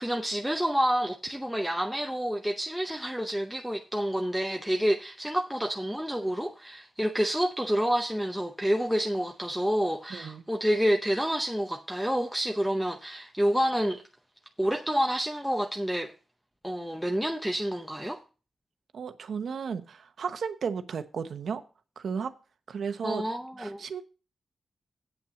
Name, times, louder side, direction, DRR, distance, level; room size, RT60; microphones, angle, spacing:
voice 1, 0.0-14.0 14.6-16.1 16.6-18.2 23.0-23.8, equal, ahead, 0.7 m, -28 dB
voice 2, 10.1-10.4 18.9-21.6 22.0-22.3 22.7-23.2 23.6-24.0, right 6 dB, 75° right, 0.9 m, -34 dB
8.5 x 5.7 x 7.5 m
wide cardioid pair, 105°, 0 cm